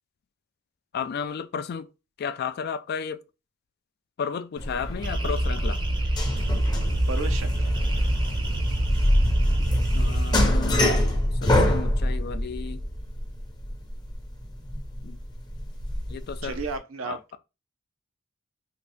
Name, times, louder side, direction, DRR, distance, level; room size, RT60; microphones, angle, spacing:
voice 1, 0.9-1.9 2.2-3.2 4.2-5.8 9.9-10.9 11.4-12.8 15.0-15.2 16.1-16.6 17.0-17.4, left 6 dB, 50° left, 0.3 m, -33 dB
sound 1, 4.6-16.7, left 1 dB, 20° left, 0.6 m, -26 dB
sound 2, 5.0-10.5, right 1 dB, 25° right, 0.4 m, -25 dB
voice 2, 7.1-7.7 16.4-17.4, right 4 dB, 80° right, 0.6 m, -33 dB
2.8 x 2.5 x 3.4 m
head